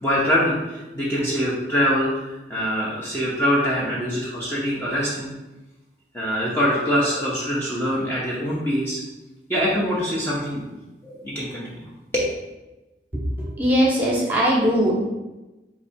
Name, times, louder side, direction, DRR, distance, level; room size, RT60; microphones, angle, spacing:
voice 1, 0.0-5.3 6.1-9.0 9.5-10.6 11.0-11.9 12.1-12.3, equal, 15° left, -7 dB, 0.7 m, -24 dB
voice 2, 13.6-14.9, equal, 10° right, -4 dB, 0.9 m, -19 dB
3.6 x 3.3 x 4.2 m, 1.0 s
head